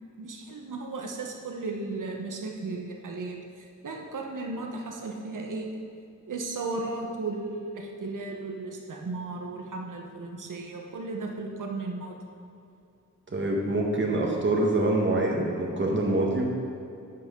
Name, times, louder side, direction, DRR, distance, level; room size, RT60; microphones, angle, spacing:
voice 1, 0.2-5.7 6.3-12.2, right 3 dB, 75° right, 1 dB, 1.2 m, -35 dB
voice 2, 13.3-16.5, right 2 dB, 35° right, -1 dB, 1.5 m, -25 dB
11.5 x 7.9 x 3.8 m, 2.6 s
wide cardioid pair, 170°, 32 cm